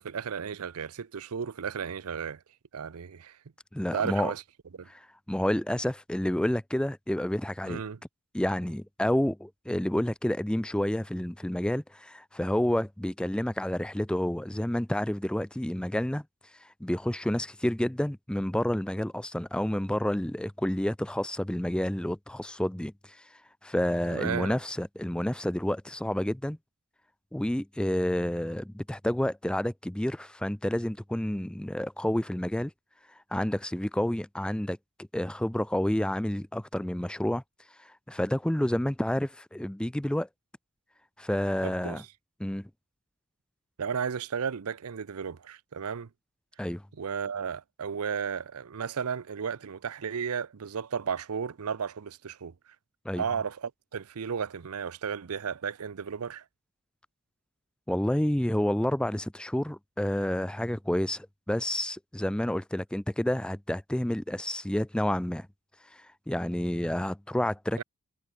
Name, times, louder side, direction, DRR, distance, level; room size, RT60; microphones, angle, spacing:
voice 1, 0.0-2.4 2.7-3.4 3.9-4.4 4.8-4.9 7.7-8.0 24.1-24.6 41.6-42.1 43.8-46.1 47.0-52.5 53.2-56.4 67.8-67.9, right 6 dB, 85° right, 0.6 m, -34 dB
voice 2, 3.7-4.3 4.9-7.8 8.3-16.2 16.6-23.2 23.6-26.6 27.3-32.7 33.3-34.8 35.1-37.4 37.8-40.3 41.2-42.0 42.4-42.7 46.6-46.8 53.1-53.2 57.9-65.5 65.9-67.8, left 1 dB, 5° left, 0.3 m, -29 dB
head